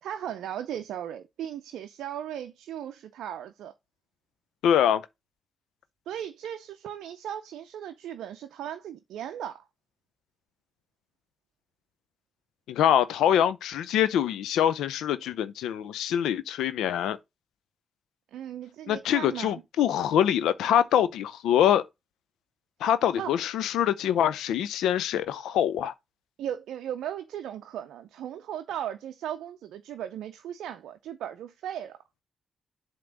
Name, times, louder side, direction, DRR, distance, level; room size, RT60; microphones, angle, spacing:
voice 1, 0.0-3.7 6.1-9.6 18.3-19.6 23.2-23.3 26.4-32.0, right 10 dB, 75° right, 0.5 m, -37 dB
voice 2, 4.6-5.0 12.7-17.2 18.9-21.8 22.8-25.9, left 10 dB, 80° left, 0.5 m, -24 dB
7.6 x 3.0 x 5.1 m
hypercardioid pair, 40°, 0 cm